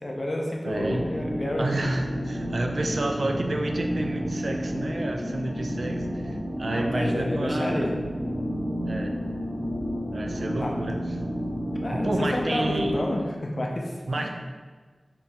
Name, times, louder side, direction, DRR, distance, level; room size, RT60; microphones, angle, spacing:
voice 1, 0.0-1.9 6.7-7.9 10.6-10.7 11.8-14.3, left 1 dB, 50° left, 0 dB, 0.5 m, -29 dB
voice 2, 0.6-1.0 1.6-7.9 8.9-9.1 10.1-10.9 11.9-12.9 14.1-14.4, right 2 dB, 80° right, 3 dB, 0.3 m, -30 dB
sound 1, 0.7-13.1, equal, 5° right, 0.8 m, -31 dB
2.8 x 2.7 x 3.3 m, 1.4 s
wide cardioid pair, 75°, 0 cm